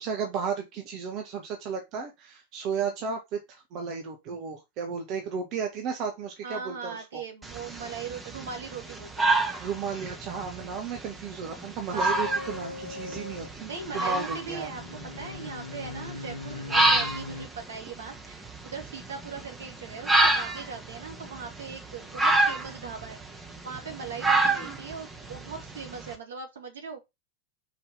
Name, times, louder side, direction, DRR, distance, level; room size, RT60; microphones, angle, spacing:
voice 1, 0.0-7.2 9.5-13.7 13.9-14.7, right 6 dB, 40° right, 1.6 m, -34 dB
voice 2, 6.4-9.5 11.8-12.3 13.6-14.8 15.2-23.2 23.6-27.0, right 5 dB, 65° right, 2.4 m, -40 dB
sound 1, 7.4-26.1, right 2 dB, 10° right, 1.6 m, -29 dB
sound 2, 12.1-13.5 13.8-17.5, left 3 dB, 75° left, 0.8 m, -40 dB
5.4 x 5.2 x 5.6 m
figure-of-eight pair, 90°, 0 cm